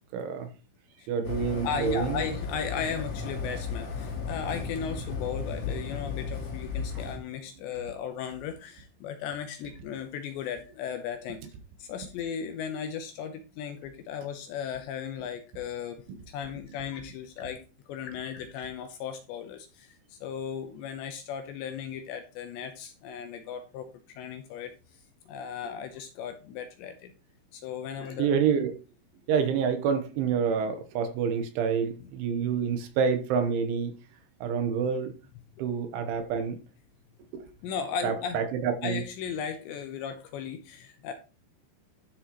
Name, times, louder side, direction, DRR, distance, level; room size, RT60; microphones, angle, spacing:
voice 1, 0.1-0.5 1.1-2.2 7.0-7.1 28.2-28.8 29.3-33.9 34.4-35.1 35.6-36.6 37.3-37.4 38.0-39.0, right 6 dB, 75° right, 3.3 m, -27 dB
sound 1, 1.2-7.2, left 4 dB, 60° left, 4.1 m, -35 dB
voice 2, 1.6-11.4 11.8-17.6 17.9-24.7 25.3-27.1 27.5-28.3 32.0-32.1 37.6-38.4 38.8-41.1, left 7 dB, 80° left, 2.8 m, -36 dB
12.5 x 6.4 x 3.0 m
omnidirectional pair, 5.7 m